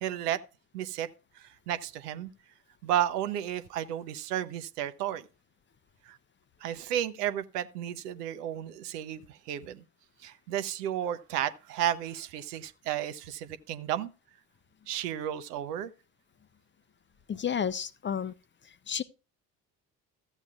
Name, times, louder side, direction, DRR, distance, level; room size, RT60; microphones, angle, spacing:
voice 1, 0.0-0.4 0.7-1.1 1.4-2.3 2.8-5.3 6.1-6.2 6.6-9.8 10.2-14.1 14.9-15.9, right 11 dB, 75° right, 0.8 m, -33 dB
voice 2, 17.3-18.3 18.6-19.0, left 8 dB, 25° left, 0.6 m, -32 dB
14.0 x 8.1 x 2.3 m
figure-of-eight pair, 50°, 47 cm